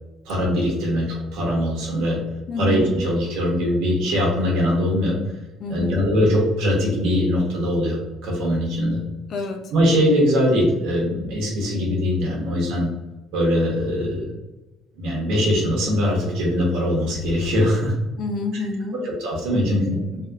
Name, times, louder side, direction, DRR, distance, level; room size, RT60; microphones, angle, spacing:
voice 1, 0.3-2.2 2.6-5.2 5.7-9.0 9.7-12.9 13.3-14.3 15.0-17.9 18.5-18.6 19.0-20.2, equal, 80° right, -2 dB, 1.1 m, -21 dB
voice 2, 2.5-2.9 5.6-6.0 9.3-9.7 18.2-19.0, left 3 dB, 40° left, 5 dB, 0.4 m, -28 dB
3.0 x 2.8 x 2.4 m, 1.1 s
cardioid pair, 160°, 0 cm